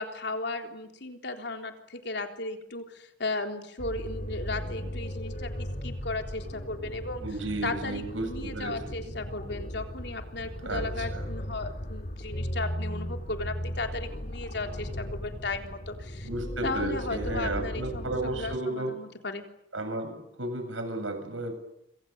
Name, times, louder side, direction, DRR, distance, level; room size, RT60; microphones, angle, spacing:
voice 1, 0.0-7.2 7.6-16.3 16.6-19.5, left 2 dB, 60° left, 5 dB, 3.7 m, -35 dB
sound 1, 3.8-18.6, equal, 45° left, 2.0 m, -36 dB
voice 2, 7.2-9.0 10.6-11.3 16.2-18.9 19.7-21.5, right 2 dB, 90° right, 8 dB, 7.7 m, -33 dB
27.0 x 26.5 x 8.0 m, 0.80 s
head